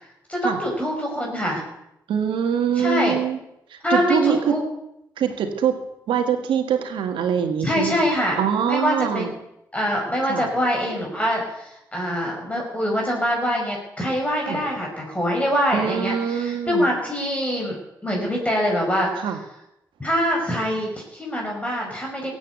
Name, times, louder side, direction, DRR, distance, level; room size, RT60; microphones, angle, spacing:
voice 1, 0.3-1.6 2.8-3.2 3.8-4.6 7.6-8.4 8.7-9.3 9.7-19.3 20.0-22.3, equal, 15° left, -1 dB, 5.4 m, -24 dB
voice 2, 2.1-3.4 3.7-4.5 5.2-5.8 6.1-8.0 8.4-9.3 10.2-10.4 14.5-14.6 15.7-16.9 19.1-19.4, right 8 dB, 80° right, 7 dB, 1.8 m, -23 dB
15.5 x 8.4 x 8.1 m, 0.85 s
supercardioid pair, 55°, 8 cm